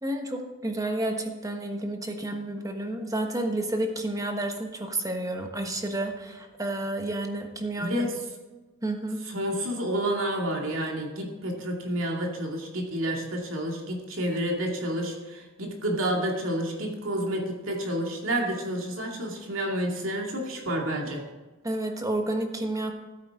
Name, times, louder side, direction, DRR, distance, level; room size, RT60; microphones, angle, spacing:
voice 1, 0.0-8.1 8.8-9.2 21.6-22.9, right 1 dB, 15° right, 4 dB, 1.3 m, -30 dB
voice 2, 7.8-8.2 9.3-21.2, right 1 dB, 80° right, 1 dB, 2.4 m, -29 dB
15.0 x 8.6 x 3.7 m, 1.2 s
head